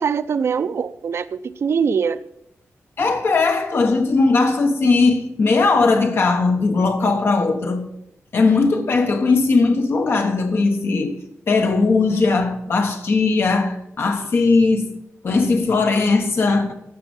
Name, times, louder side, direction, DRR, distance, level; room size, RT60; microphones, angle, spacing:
voice 1, 0.0-2.2, right 6 dB, 60° right, 0.5 m, -22 dB
voice 2, 3.0-7.8 8.3-11.2 11.5-15.0 15.2-16.7, left 3 dB, 50° left, 1.3 m, -18 dB
14.0 x 5.8 x 5.4 m
wide cardioid pair, 175°, 5 cm